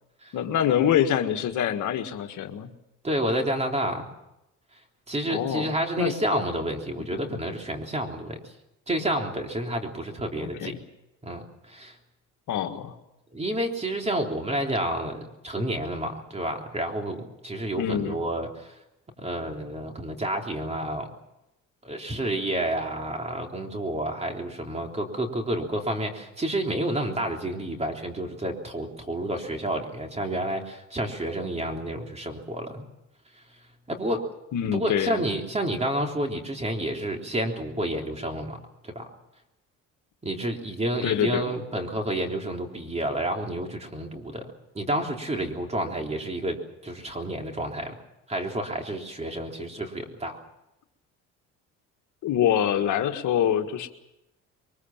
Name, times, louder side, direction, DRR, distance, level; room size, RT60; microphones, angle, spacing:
voice 1, 0.3-2.7 5.3-6.1 7.3-7.4 10.4-10.8 12.5-12.9 17.8-18.2 34.5-35.2 41.0-41.4 52.2-53.9, left 10 dB, 70° left, 6 dB, 1.7 m, -25 dB
voice 2, 3.0-4.1 5.1-8.4 8.9-10.7 11.2-11.9 13.3-18.8 19.2-21.1 21.8-32.9 33.9-34.2 34.7-38.6 38.8-39.1 40.2-44.4 44.8-48.0 48.3-50.4, right 1 dB, 20° right, 3 dB, 3.4 m, -30 dB
23.0 x 21.5 x 7.4 m, 0.90 s
cardioid pair, 105°, 31 cm